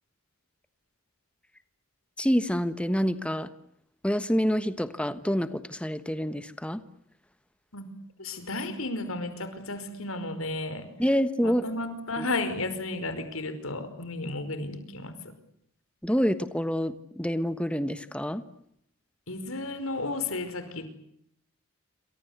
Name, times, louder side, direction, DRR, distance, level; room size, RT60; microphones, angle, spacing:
voice 1, 2.2-3.5 4.0-6.8 11.0-11.6 12.2-12.3 16.0-18.4, equal, 5° left, 12 dB, 1.3 m, -27 dB
voice 2, 8.2-10.9 11.4-15.1 19.3-20.9, left 2 dB, 80° left, 10 dB, 5.2 m, -33 dB
28.0 x 25.5 x 8.2 m, 0.73 s
head